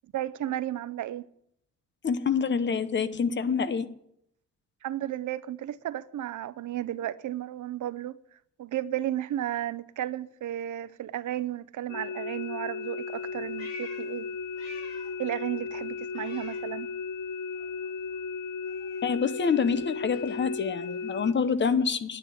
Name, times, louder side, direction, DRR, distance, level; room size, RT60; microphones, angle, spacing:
voice 1, 0.1-1.3 4.8-8.2 8.6-14.3 15.2-16.9, right 12 dB, 70° right, 0.7 m, -33 dB
voice 2, 2.0-3.9 19.0-22.2, left 6 dB, 35° left, 0.8 m, -26 dB
sound 1, 11.9-21.3, left 5 dB, 85° left, 1.0 m, -35 dB
Meow, 13.1-15.3 15.6-17.3 17.5-21.7, left 2 dB, 55° left, 5.1 m, -50 dB
10.0 x 9.7 x 9.6 m
wide cardioid pair, 170°, 31 cm